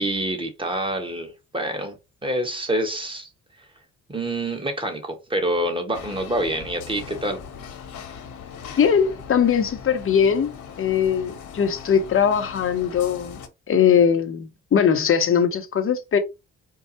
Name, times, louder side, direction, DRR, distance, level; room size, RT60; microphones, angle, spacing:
voice 1, 0.0-3.3 3.6-3.7 4.1-7.4, right 1 dB, 15° right, 1.5 m, -27 dB
sound 1, 5.9-13.5, left 7 dB, 75° left, 1.3 m, -40 dB
voice 2, 8.8-10.5 10.8-13.4 13.7-16.2, left 7 dB, 45° left, 1.0 m, -20 dB
4.6 x 2.3 x 4.2 m
cardioid pair, 90°, 30 cm